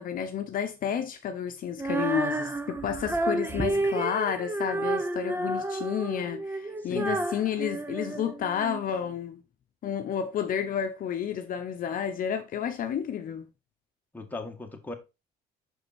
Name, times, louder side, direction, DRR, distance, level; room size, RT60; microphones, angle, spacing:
voice 1, 0.0-9.4 9.8-13.5, left 8 dB, 55° left, 0.9 m, -31 dB
Female singing, 1.8-8.8, right 2 dB, 15° right, 0.9 m, -30 dB
voice 2, 6.8-7.2 14.1-15.0, left 2 dB, 10° left, 1.7 m, -38 dB
6.4 x 5.0 x 4.3 m
cardioid pair, 110°, 17 cm